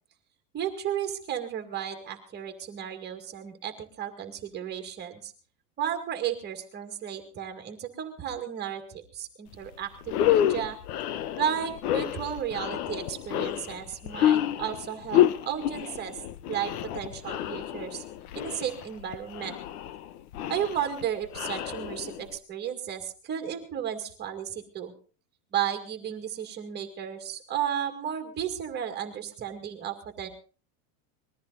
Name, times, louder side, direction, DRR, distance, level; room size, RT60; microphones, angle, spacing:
voice 1, 0.5-5.3 5.8-10.8 11.4-16.2 16.5-18.0 18.3-19.6 20.5-24.9 25.5-30.3, right 9 dB, 20° right, 6 dB, 2.2 m, -33 dB
sound 1, 9.5-9.7 10.0-22.4, left 11 dB, 65° left, 1.2 m, -29 dB
21.0 x 14.0 x 4.0 m, 0.38 s
supercardioid pair, 175°, 48 cm